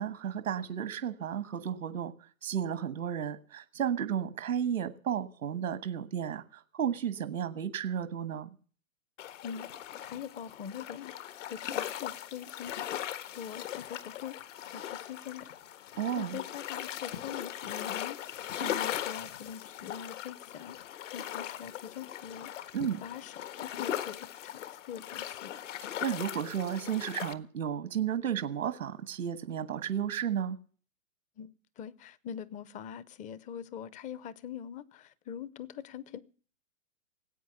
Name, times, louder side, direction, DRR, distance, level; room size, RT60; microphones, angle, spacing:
voice 1, 0.0-2.1 2.4-8.5 16.0-16.4 22.7-23.0 26.0-30.6, right 9 dB, 90° right, 1.4 m, -33 dB
sound 1, 9.2-27.3, left 11 dB, 65° left, 1.6 m, -39 dB
voice 2, 10.0-13.0 13.3-15.5 16.2-20.8 21.1-22.7 23.0-24.6 24.9-25.5 31.4-36.2, left 8 dB, 20° left, 0.6 m, -43 dB
18.5 x 8.5 x 6.8 m
hypercardioid pair, 125°, 41 cm